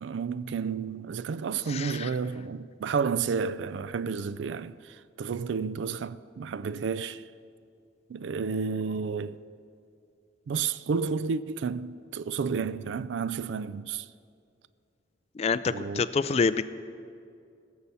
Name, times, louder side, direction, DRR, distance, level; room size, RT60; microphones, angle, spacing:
voice 1, 0.0-7.2 8.1-9.4 10.5-14.1 15.7-16.0, right 5 dB, 70° right, 0.3 m, -31 dB
voice 2, 1.7-2.1 15.4-16.6, left 5 dB, 35° left, 0.3 m, -27 dB
16.5 x 6.8 x 7.0 m
head